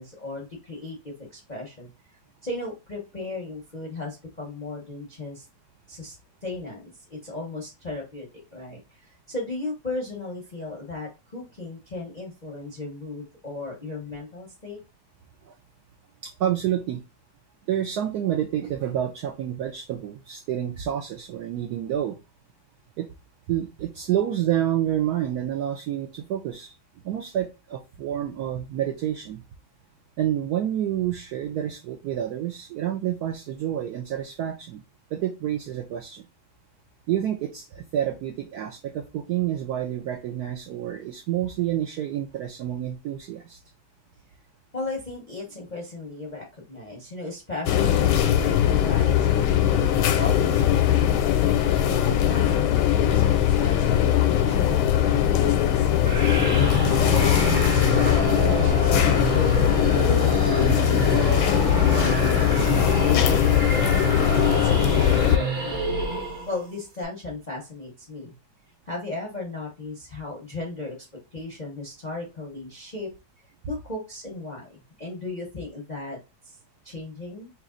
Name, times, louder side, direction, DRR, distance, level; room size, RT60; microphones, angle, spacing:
voice 1, 0.0-1.9 2.4-5.5 5.9-6.2 6.4-14.8 44.7-51.2 51.8-66.1 66.5-68.3 68.9-70.9 71.3-73.1 73.7-76.2 76.4-76.6 76.8-77.5, left 2 dB, 40° left, -1 dB, 0.6 m, -36 dB
voice 2, 16.2-17.0 17.7-22.2 23.0-23.1 23.5-26.7 27.0-29.4 30.2-34.8 35.1-36.3 37.1-43.6, right 11 dB, 80° right, 4 dB, 0.8 m, -28 dB
sound 1, 47.7-65.4, left 10 dB, 85° left, 1.4 m, -20 dB
sound 2, 56.1-66.6, right 3 dB, 30° right, 0.9 m, -28 dB
3.3 x 3.0 x 3.7 m, 0.28 s
omnidirectional pair, 2.2 m